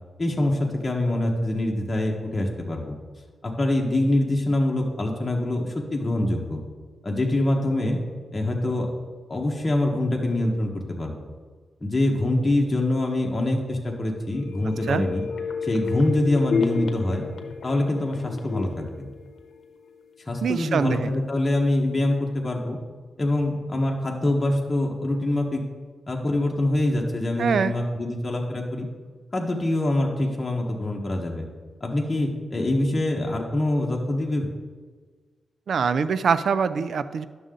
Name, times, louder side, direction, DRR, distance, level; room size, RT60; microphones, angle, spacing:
voice 1, 0.2-2.9 3.4-6.6 7.0-8.0 8.3-8.9 9.3-11.2 11.8-15.2 15.6-17.3 17.6-19.1 20.3-22.8 23.2-25.6 26.1-28.9 29.3-31.5 31.8-34.5, left 1 dB, 25° left, -1 dB, 1.3 m, -24 dB
sound 1, 14.3-20.0 20.4-20.5, left 5 dB, 90° left, 0.8 m, -31 dB
voice 2, 20.4-21.1 27.4-27.7 35.7-37.2, right 6 dB, 75° right, 14 dB, 0.4 m, -23 dB
11.0 x 6.7 x 3.8 m, 1.5 s
cardioid pair, 90°, 0 cm